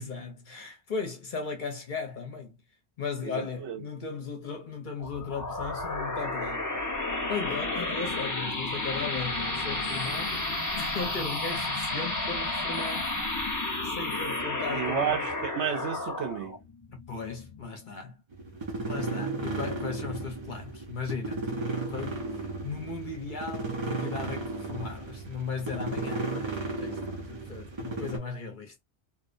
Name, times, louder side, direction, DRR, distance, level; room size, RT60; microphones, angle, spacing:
voice 1, 0.0-2.6 3.0-6.7 7.3-10.4 10.8-13.2 13.8-15.2 16.9-18.2 18.8-21.5 21.9-28.7, left 5 dB, 50° left, 0.7 m, -37 dB
voice 2, 3.2-3.8 14.7-16.6, right 8 dB, 75° right, 0.9 m, -32 dB
sound 1, 5.0-18.1, left 2 dB, 20° left, 0.7 m, -32 dB
sound 2, 18.3-28.2, right 3 dB, 45° right, 0.3 m, -34 dB
2.6 x 2.0 x 2.4 m
omnidirectional pair, 1.2 m